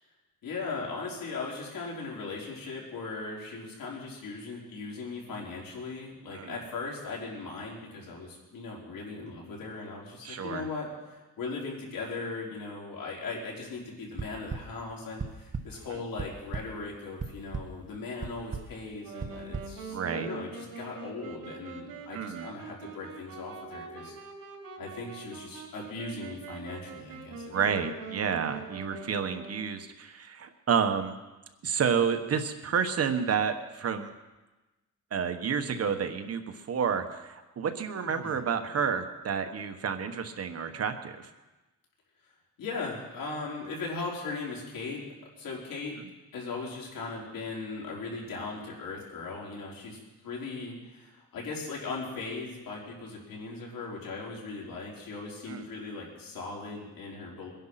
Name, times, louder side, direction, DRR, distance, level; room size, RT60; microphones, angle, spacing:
voice 1, 0.4-24.1 24.8-27.5 38.0-38.4 42.6-45.0 45.4-46.0 46.3-57.5, left 3 dB, 80° left, -3 dB, 5.0 m, -38 dB
voice 2, 10.2-10.7 19.9-20.3 22.1-22.5 27.5-31.2 31.6-34.1 35.1-41.3 55.5-55.6, right 7 dB, 45° right, 7 dB, 1.3 m, -30 dB
sound 1, 14.2-14.6 15.2-15.6 16.0-16.6 17.2-17.6 18.2-18.6 19.2-19.6, right 5 dB, 25° right, 0.8 m, -34 dB
Wind instrument woodwind instrument, 19.0-29.9, right 4 dB, 75° right, 2.6 m, -44 dB
23.0 x 10.5 x 5.9 m, 1.1 s
cardioid pair, 155°, 33 cm